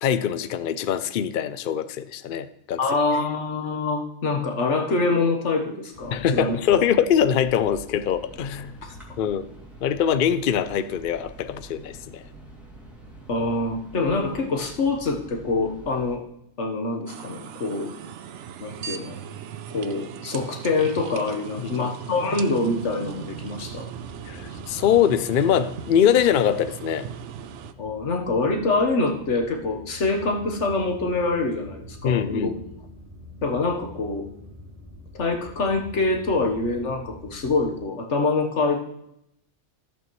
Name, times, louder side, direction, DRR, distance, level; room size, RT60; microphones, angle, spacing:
voice 1, 0.0-2.8 6.1-8.7 9.2-9.4 9.8-12.2 21.6-21.9 24.3-27.1 32.0-32.6, left 9 dB, 60° left, 12 dB, 0.6 m, -23 dB
voice 2, 2.8-6.6 8.8-8.9 13.3-16.2 16.6-17.9 18.6-19.2 19.7-23.9 27.8-32.5 33.4-34.3 35.1-38.8, left 3 dB, 80° left, 4 dB, 1.5 m, -25 dB
sound 1, 5.9-16.2, right 1 dB, ahead, 2.4 m, -45 dB
sound 2, 17.1-27.7, right 8 dB, 80° right, 0.9 m, -38 dB
sound 3, 22.8-37.8, equal, 55° right, 2.7 m, -46 dB
14.0 x 7.8 x 3.1 m, 0.77 s
omnidirectional pair, 1.2 m